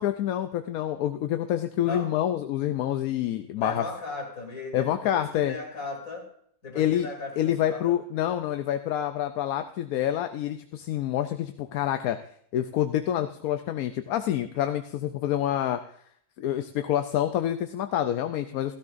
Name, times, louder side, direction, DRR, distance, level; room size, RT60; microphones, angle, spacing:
voice 1, 0.0-3.8 4.7-5.5 6.8-7.1 7.4-12.2 12.5-15.8 16.4-18.7, left 11 dB, 90° left, 9 dB, 1.1 m, -27 dB
voice 2, 3.6-6.3 6.6-7.9, left 3 dB, 75° left, 1 dB, 3.2 m, -37 dB
16.0 x 13.0 x 2.6 m, 0.65 s
omnidirectional pair, 1.5 m